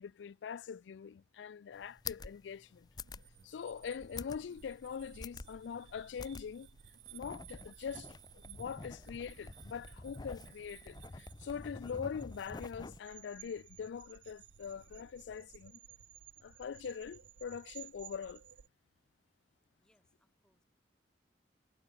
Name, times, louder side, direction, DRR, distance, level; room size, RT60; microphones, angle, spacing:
voice 1, 0.0-2.9 3.4-6.7 7.1-15.8 16.4-18.4, left 7 dB, 80° left, 0.3 m, -43 dB
sound 1, 1.7-13.0, left 4 dB, 20° left, 0.5 m, -48 dB
sound 2, 3.0-18.7, right 9 dB, 80° right, 0.5 m, -57 dB
voice 2, 19.8-20.6, equal, 5° left, 4.8 m, -75 dB
head